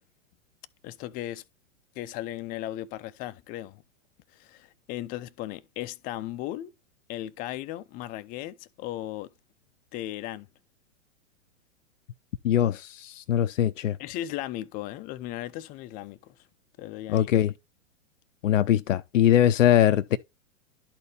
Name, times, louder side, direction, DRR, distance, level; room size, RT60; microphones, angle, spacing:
voice 1, 0.8-1.4 2.0-3.8 4.3-6.7 7.1-9.3 9.9-10.5 14.0-16.4 16.8-17.3, left 14 dB, 25° left, 0.4 m, -36 dB
voice 2, 12.4-14.0 17.1-17.5 18.4-20.2, left 11 dB, 85° left, 0.5 m, -22 dB
12.0 x 4.2 x 3.2 m
hypercardioid pair, 115°, 37 cm